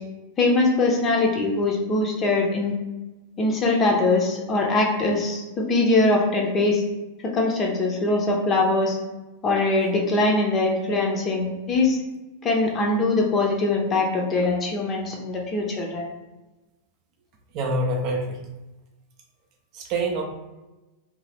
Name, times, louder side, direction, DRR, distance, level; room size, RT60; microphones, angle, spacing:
voice 1, 0.4-2.7 3.4-6.8 7.2-9.0 9.4-12.0 12.4-16.0, left 2 dB, 25° left, 0 dB, 0.6 m, -22 dB
voice 2, 17.5-18.4 19.7-20.2, right 1 dB, 40° right, 2 dB, 0.5 m, -25 dB
2.7 x 2.3 x 3.3 m, 1.1 s
figure-of-eight pair, 90°, 0 cm